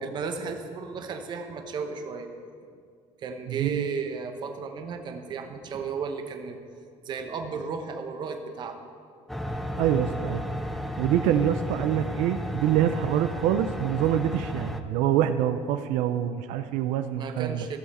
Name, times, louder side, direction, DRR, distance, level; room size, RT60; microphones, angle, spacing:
voice 1, 0.0-2.3 3.2-6.6 7.0-8.9 17.2-17.8, right 5 dB, 35° right, 5 dB, 0.8 m, -34 dB
voice 2, 3.5-3.9 9.8-10.4 11.0-17.7, right 10 dB, 85° right, 9 dB, 0.5 m, -25 dB
sound 1, 9.3-14.8, equal, ahead, 0.4 m, -33 dB
15.0 x 7.1 x 4.2 m, 2.3 s
cardioid pair, 170°, 13 cm